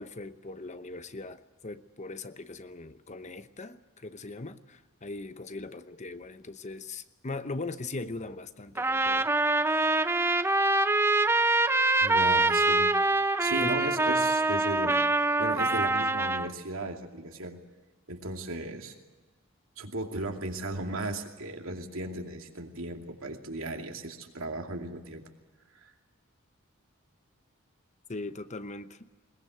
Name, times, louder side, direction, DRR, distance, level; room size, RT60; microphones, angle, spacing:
voice 1, 0.0-9.3 13.6-13.8 28.1-29.1, left 3 dB, 35° left, 0.9 m, -40 dB
Trumpet, 8.8-16.5, right 2 dB, 10° right, 0.7 m, -25 dB
voice 2, 12.0-12.9 13.4-15.0 15.4-17.6 18.1-18.9 19.8-25.2 25.8-25.9, right 2 dB, 75° right, 2.6 m, -36 dB
21.5 x 21.0 x 8.0 m
head